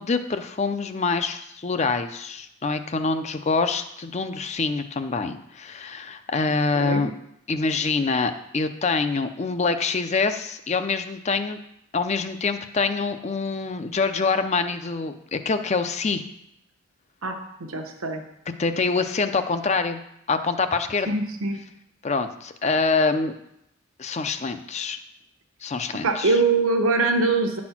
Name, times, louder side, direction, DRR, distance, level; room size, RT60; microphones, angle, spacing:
voice 1, 0.0-7.1 7.5-11.6 11.9-16.2 18.6-20.0 20.3-21.1 22.0-23.3 24.0-25.0 25.6-26.4, left 4 dB, 30° left, 9 dB, 0.5 m, -25 dB
voice 2, 6.7-7.1 17.2-18.2 21.1-21.6 26.0-27.6, right 3 dB, 75° right, 4 dB, 1.0 m, -23 dB
9.7 x 4.2 x 5.8 m, 0.79 s
head